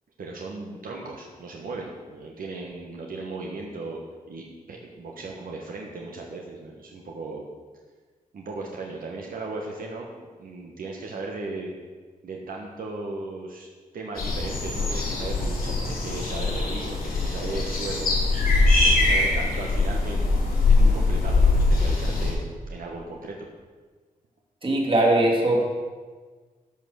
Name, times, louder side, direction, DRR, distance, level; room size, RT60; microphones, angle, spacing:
voice 1, 0.2-4.0 4.3-7.4 8.3-10.1 10.4-11.7 12.2-13.7 13.9-18.1 18.8-22.4 22.7-23.4, right 3 dB, 75° right, -1 dB, 1.3 m, -36 dB
sound 1, 14.2-22.3, left 3 dB, 90° left, 3.2 m, -22 dB
voice 2, 24.6-25.6, right 1 dB, 35° right, -1 dB, 2.5 m, -20 dB
12.0 x 5.7 x 6.4 m, 1.4 s
wide cardioid pair, 120°, 15 cm